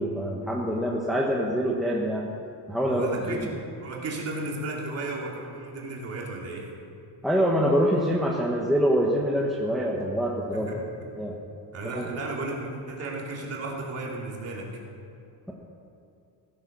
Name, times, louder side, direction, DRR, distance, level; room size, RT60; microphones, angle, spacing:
voice 1, 0.0-2.3 2.7-3.5 7.2-10.7 11.2-11.4 11.9-12.1, equal, ahead, -3 dB, 0.9 m, -25 dB
voice 2, 2.9-3.5 3.8-6.7 10.5-11.1 11.7-14.7, right 2 dB, 35° right, -2 dB, 2.6 m, -34 dB
16.0 x 9.8 x 6.0 m, 2.6 s
cardioid pair, 155°, 44 cm